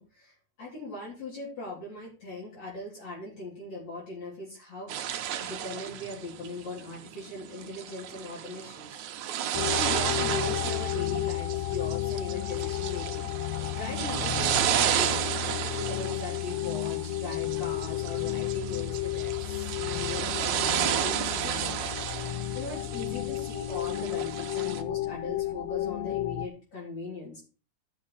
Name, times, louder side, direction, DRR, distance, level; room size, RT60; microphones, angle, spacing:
voice 1, 0.0-4.9 5.4-9.0 9.7-13.3 13.7-15.3 15.6-21.8 22.5-27.4, left 2 dB, 55° left, -6 dB, 4.7 m, -39 dB
sound 1, 4.9-24.8, right 10 dB, 75° right, 2.2 m, -32 dB
sound 2, 9.5-26.5, left 15 dB, 75° left, 1.5 m, -32 dB
12.0 x 6.3 x 4.1 m, 0.35 s
omnidirectional pair, 3.5 m